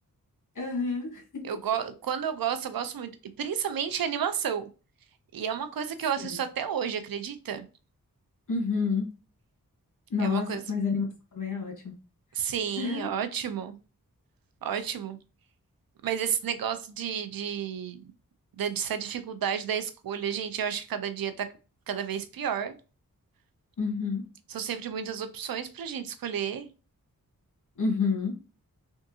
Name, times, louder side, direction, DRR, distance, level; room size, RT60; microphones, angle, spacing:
voice 1, 0.5-1.4 6.2-6.4 8.5-9.0 10.1-11.0 11.3-11.9 12.8-13.1 23.8-24.2 27.8-28.4, left 4 dB, 60° left, 1.4 m, -29 dB
voice 2, 1.4-3.1 3.4-4.7 5.3-7.7 10.2-10.6 12.3-13.7 14.6-15.2 16.0-18.0 18.6-21.5 21.9-22.8 24.5-26.7, right 8 dB, 80° right, 0.5 m, -31 dB
3.5 x 2.5 x 2.7 m
cardioid pair, 55°, 35 cm